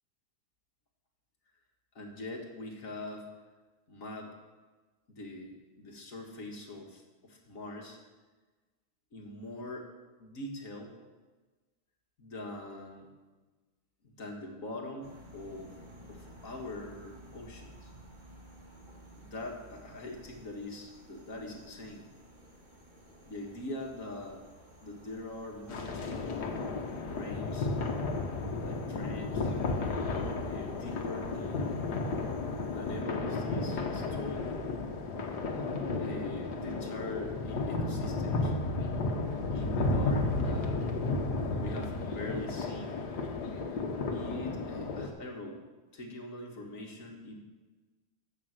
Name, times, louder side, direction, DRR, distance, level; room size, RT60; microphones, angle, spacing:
voice 1, 2.0-3.3 3.9-4.3 5.1-8.0 9.1-9.9 10.2-11.0 12.2-13.1 14.0-15.7 16.1-17.9 19.1-22.1 23.2-24.4 24.8-26.3 27.1-27.7 28.6-29.5 30.4-31.9 32.7-34.5 36.0-38.5 39.5-40.8 41.6-43.0 44.1-45.6 45.9-47.4, left 2 dB, 50° left, 1 dB, 2.0 m, -43 dB
sound 1, 15.0-33.0, equal, 25° right, 1.9 m, -55 dB
sound 2, 25.7-45.1, left 3 dB, 70° left, 1.8 m, -33 dB
12.0 x 8.1 x 6.6 m, 1.3 s
omnidirectional pair, 1.8 m